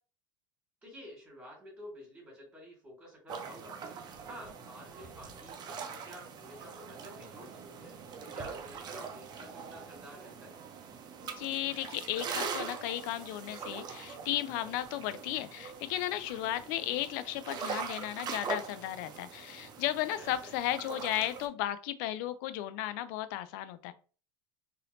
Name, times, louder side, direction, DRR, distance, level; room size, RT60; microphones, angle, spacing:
voice 1, 0.8-4.0 4.2-7.9 8.2-10.5 20.2-20.5, equal, 15° right, -3 dB, 1.8 m, -50 dB
sound 1, 3.3-21.5, right 6 dB, 35° right, 0.7 m, -42 dB
voice 2, 11.4-23.9, left 13 dB, 55° left, 13 dB, 0.4 m, -35 dB
4.0 x 2.7 x 2.7 m, 0.38 s
hypercardioid pair, 80°, 12 cm